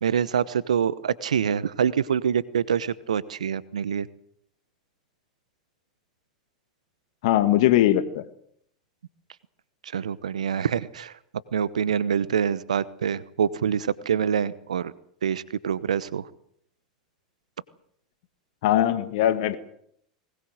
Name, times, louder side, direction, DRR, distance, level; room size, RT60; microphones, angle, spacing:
voice 1, 0.0-4.1 9.8-11.1 11.5-14.9 15.2-16.3, right 8 dB, 80° right, 19 dB, 0.9 m, -25 dB
voice 2, 7.2-8.2 18.6-19.6, left 12 dB, 60° left, 13 dB, 1.6 m, -20 dB
21.0 x 20.0 x 7.8 m, 0.69 s
hypercardioid pair, 90°, 4 cm